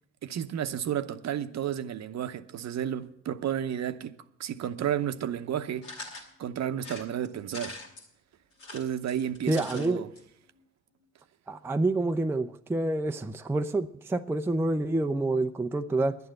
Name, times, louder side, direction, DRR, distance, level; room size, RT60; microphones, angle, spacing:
voice 1, 0.2-4.1 4.4-5.9 6.4-7.8 8.7-10.1, right 10 dB, 45° right, 0.8 m, -32 dB
sound 1, 5.8-6.3 6.8-8.1 8.5-9.9 10.2-10.3 10.5-10.6, left 2 dB, 85° left, 2.4 m, -43 dB
voice 2, 9.5-10.0 11.5-16.2, right 2 dB, 5° right, 0.5 m, -28 dB
11.0 x 9.4 x 7.7 m
hypercardioid pair, 50°, 37 cm